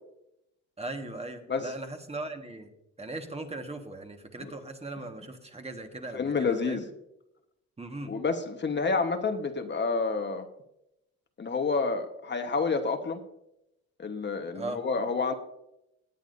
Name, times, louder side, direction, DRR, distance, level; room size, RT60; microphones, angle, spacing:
voice 1, 0.8-2.7 3.0-6.8 7.8-8.1 14.5-14.8, right 2 dB, 20° right, 5 dB, 1.6 m, -39 dB
voice 2, 6.1-6.8 8.1-10.5 11.4-13.2 14.0-15.3, left 4 dB, 35° left, 6 dB, 1.3 m, -29 dB
18.0 x 9.1 x 2.7 m, 0.82 s
cardioid pair, 90°, 30 cm